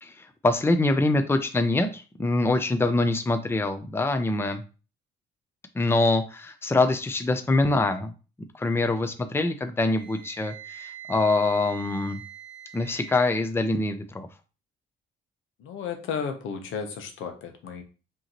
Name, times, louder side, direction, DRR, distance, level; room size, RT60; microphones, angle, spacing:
voice 1, 0.0-4.6 5.7-8.1 8.6-12.2 12.7-14.3, left 2 dB, 10° left, 7 dB, 0.5 m, -24 dB
Wind instrument woodwind instrument, 9.9-13.4, right 10 dB, 70° right, 0.8 m, -43 dB
voice 2, 15.6-17.8, left 6 dB, 80° left, 5 dB, 0.9 m, -33 dB
5.3 x 2.9 x 3.0 m, 0.34 s
cardioid pair, 90°, 20 cm